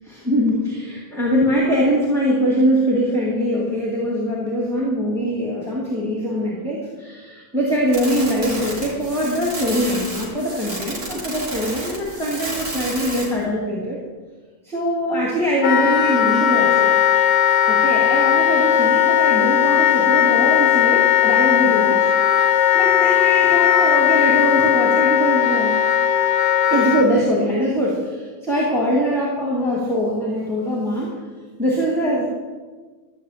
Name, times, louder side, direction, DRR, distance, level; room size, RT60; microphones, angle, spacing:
voice 1, 0.0-14.0 14.6-16.9 17.7-22.4 22.7-25.7 26.7-31.1 31.6-32.3, equal, ahead, -4 dB, 2.2 m, -22 dB
sound 1, 7.9-13.4, right 1 dB, 85° right, 3.7 m, -31 dB
Wind instrument woodwind instrument, 15.6-27.1, left 10 dB, 55° left, 1.0 m, -17 dB
13.0 x 6.5 x 8.5 m, 1.4 s
omnidirectional pair, 1.5 m